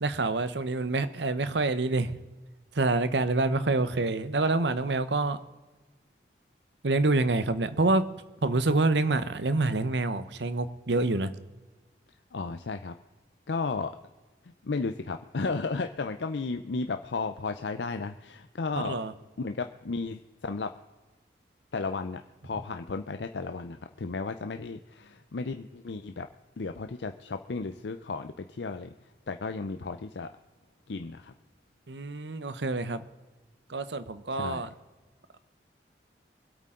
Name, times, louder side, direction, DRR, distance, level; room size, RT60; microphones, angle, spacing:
voice 1, 0.0-2.2 2.7-5.4 6.8-8.1 8.4-11.3 18.8-19.1 31.9-33.0 33.7-34.7, right 2 dB, 85° right, 13 dB, 0.9 m, -27 dB
voice 2, 12.3-13.0 13.5-14.0 14.4-19.0 19.4-20.7 21.7-26.3 26.6-30.3 30.9-31.3 34.3-34.7, left 4 dB, 85° left, 8 dB, 0.6 m, -34 dB
24.0 x 8.4 x 3.8 m, 1.2 s
head